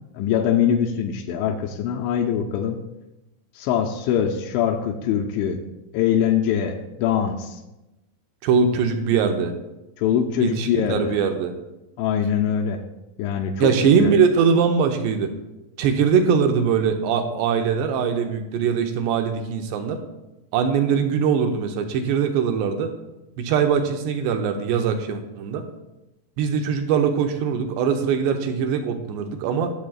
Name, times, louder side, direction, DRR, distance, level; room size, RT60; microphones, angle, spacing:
voice 1, 0.1-2.8 3.6-5.6 5.9-7.6 10.0-11.1 12.0-12.8 13.2-14.1, left 8 dB, 85° left, 1 dB, 3.0 m, -23 dB
voice 2, 8.4-9.5 10.4-11.5 13.6-15.3 15.8-20.0 20.5-22.9 23.4-25.6 26.4-29.7, right 6 dB, 75° right, 5 dB, 2.8 m, -21 dB
22.0 x 7.4 x 2.4 m, 0.97 s
omnidirectional pair, 5.3 m